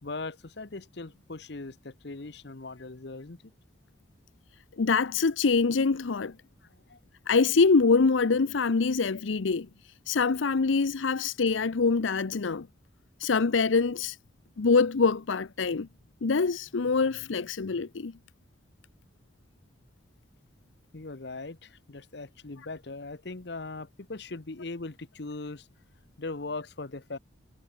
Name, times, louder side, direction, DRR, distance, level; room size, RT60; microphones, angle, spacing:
voice 1, 0.0-3.4 6.6-7.0 20.9-25.7 26.2-27.2, left 3 dB, 60° left, 1.0 m, -39 dB
voice 2, 4.8-6.3 7.3-9.7 10.1-12.7 13.2-14.2 14.6-15.9 16.2-18.1, left 4 dB, 85° left, 0.7 m, -24 dB
head